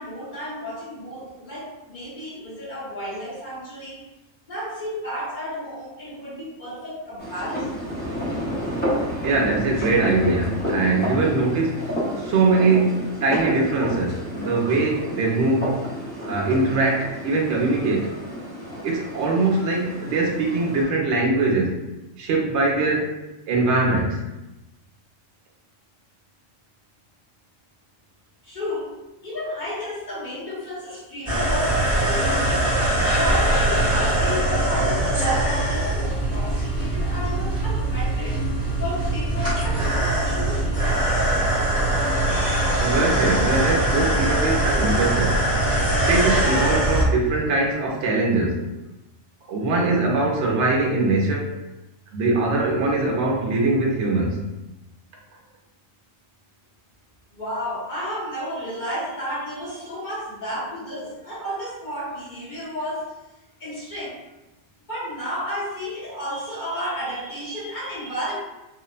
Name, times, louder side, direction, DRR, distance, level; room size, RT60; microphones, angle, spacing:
voice 1, 0.0-4.0 4.5-7.9 28.4-32.7 33.1-38.4 38.8-41.3 57.3-63.1 63.6-64.2 64.9-68.4, equal, 40° left, -8 dB, 1.0 m, -32 dB
sound 1, 7.2-20.8, equal, 15° left, 0.4 m, -30 dB
voice 2, 9.2-11.7 12.2-15.8 16.3-18.1 18.8-21.8 22.2-23.1 23.5-24.2 42.8-45.4 46.1-48.6 49.5-51.5 52.1-54.4, right 3 dB, 65° right, 0 dB, 0.8 m, -22 dB
sound 2, 31.3-47.0, right 1 dB, 5° right, 0.9 m, -22 dB
2.8 x 2.0 x 2.3 m, 0.98 s
omnidirectional pair, 1.4 m